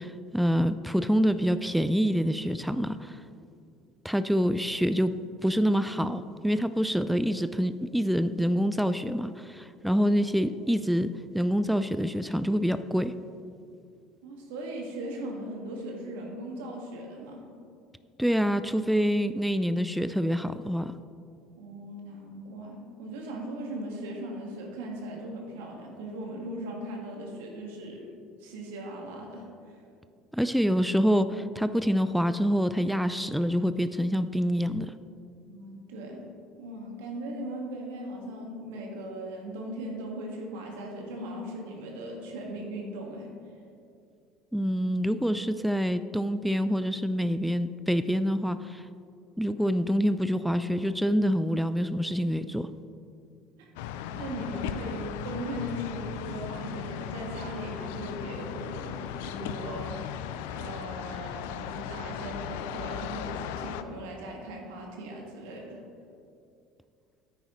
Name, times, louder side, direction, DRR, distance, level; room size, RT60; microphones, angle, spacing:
voice 1, 0.0-3.2 4.0-5.1 5.4-13.1 18.2-20.9 30.3-34.9 44.5-48.8 49.4-52.7, equal, ahead, 12 dB, 0.3 m, -26 dB
voice 2, 14.2-17.5 21.6-28.1 28.4-29.8 35.5-36.2 36.6-43.3 53.6-53.7 54.2-60.3 60.5-65.8, right 1 dB, 85° right, 0 dB, 1.7 m, -38 dB
sound 1, 53.8-63.8, left 10 dB, 80° left, 0.4 m, -37 dB
10.0 x 8.8 x 3.1 m, 2.5 s
supercardioid pair, 80°, 0 cm